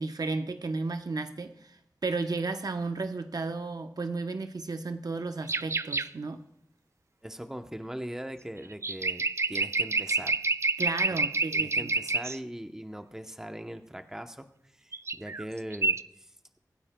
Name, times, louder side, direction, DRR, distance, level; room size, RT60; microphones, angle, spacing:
voice 1, 0.0-6.4 10.8-11.9, right 3 dB, 70° right, 7 dB, 0.8 m, -33 dB
sound 1, 5.5-6.1 8.7-12.4 14.9-15.4 15.7-16.0, right 3 dB, 40° right, 0.3 m, -28 dB
voice 2, 7.2-10.4 11.5-14.5 14.8-16.3, equal, 5° right, 7 dB, 0.8 m, -40 dB
23.5 x 9.5 x 2.2 m, 0.71 s
wide cardioid pair, 70°, 7 cm